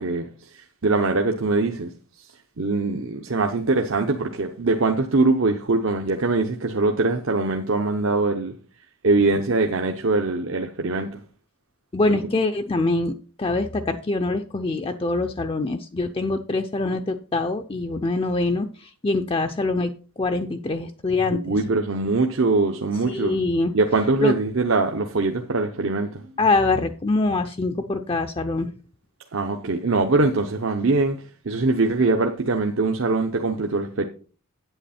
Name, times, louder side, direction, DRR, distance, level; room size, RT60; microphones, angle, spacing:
voice 1, 0.0-1.9 2.2-2.3 2.6-8.5 9.0-11.2 21.3-23.4 23.7-26.2 29.3-31.2 31.4-34.0, right 3 dB, 65° right, 0.8 m, -22 dB
voice 2, 11.9-13.1 13.4-21.5 23.1-23.7 24.2-24.3 26.4-28.7, left 3 dB, 25° left, 0.5 m, -24 dB
9.3 x 8.0 x 4.3 m
head